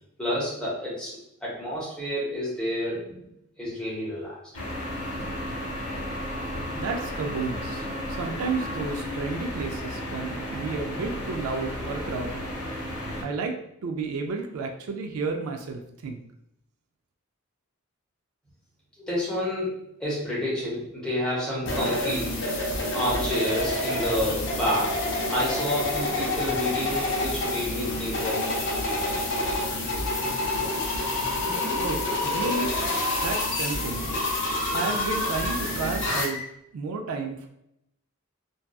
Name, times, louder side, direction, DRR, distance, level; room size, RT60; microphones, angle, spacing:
voice 1, 0.2-3.2 3.6-4.4 5.2-5.3 19.0-22.4 22.9-25.0 25.3-29.1, left 1 dB, 5° left, -6 dB, 0.8 m, -29 dB
sound 1, 4.5-13.2, left 1 dB, 75° left, 0.8 m, -33 dB
voice 2, 6.7-12.5 13.2-13.5 13.8-16.2 31.8-32.7 33.2-34.1 34.7-36.4 36.7-37.5, right 4 dB, 75° right, 4 dB, 0.3 m, -32 dB
sound 2, 21.6-36.2, left 2 dB, 55° left, 0.5 m, -28 dB
sound 3, 31.4-36.4, equal, 35° right, 1.1 m, -38 dB
2.7 x 2.2 x 2.2 m, 0.78 s
head